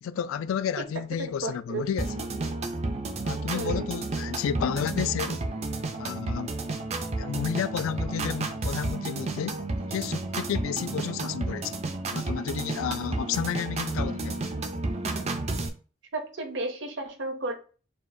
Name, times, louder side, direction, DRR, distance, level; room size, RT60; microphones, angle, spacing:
voice 1, 0.0-2.1 3.2-5.4 6.0-6.5 7.2-9.6 9.9-11.7 12.1-14.4, left 8 dB, 75° left, 0.3 m, -31 dB
voice 2, 1.2-1.8 3.5-3.8 16.1-17.5, right 2 dB, 60° right, 0.7 m, -33 dB
sound 1, 2.0-15.7, right 2 dB, 30° right, 0.4 m, -31 dB
6.7 x 2.3 x 2.6 m
head